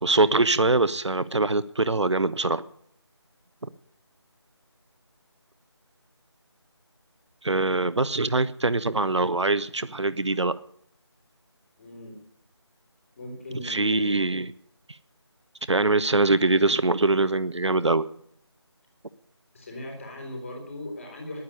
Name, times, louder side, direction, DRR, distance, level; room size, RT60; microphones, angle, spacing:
voice 1, 0.0-2.6 7.4-10.6 13.6-14.5 14.9-15.0 15.7-18.1, right 2 dB, 75° right, 15 dB, 0.7 m, -23 dB
voice 2, 11.8-12.1 13.2-14.2 19.5-21.4, left 1 dB, 30° left, 1 dB, 4.2 m, -39 dB
10.5 x 9.6 x 9.9 m, 0.69 s
figure-of-eight pair, 165°, 15 cm